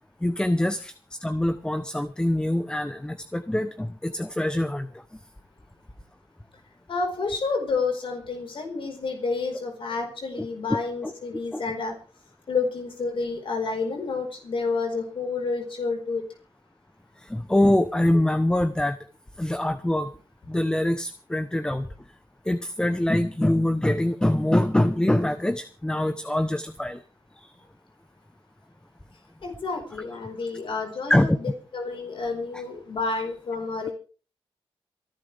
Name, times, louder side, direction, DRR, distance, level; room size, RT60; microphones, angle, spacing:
voice 1, 0.2-0.9 1.2-5.2 10.4-10.8 11.0-11.1 11.5-11.6 17.2-19.0 19.4-20.1 20.5-21.9 22.4-27.0 27.3-27.5 31.1-31.4 32.5-32.6, left 1 dB, 10° left, 11 dB, 0.9 m, -24 dB
voice 2, 6.9-11.9 12.5-16.2 29.4-33.9, left 4 dB, 60° left, 3 dB, 4.9 m, -29 dB
27.5 x 11.5 x 3.5 m, 0.38 s
wide cardioid pair, 125°, 10 cm